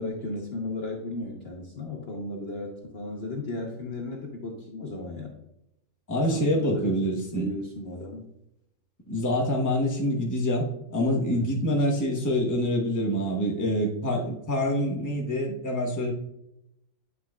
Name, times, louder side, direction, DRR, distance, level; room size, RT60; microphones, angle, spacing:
voice 1, 0.0-5.3 6.3-6.9 7.3-8.2 11.3-11.6, left 2 dB, 45° left, 0 dB, 1.0 m, -35 dB
voice 2, 6.1-7.5 9.1-16.1, equal, 15° left, -1 dB, 0.9 m, -26 dB
9.4 x 5.9 x 2.3 m, 0.82 s
omnidirectional pair, 1.7 m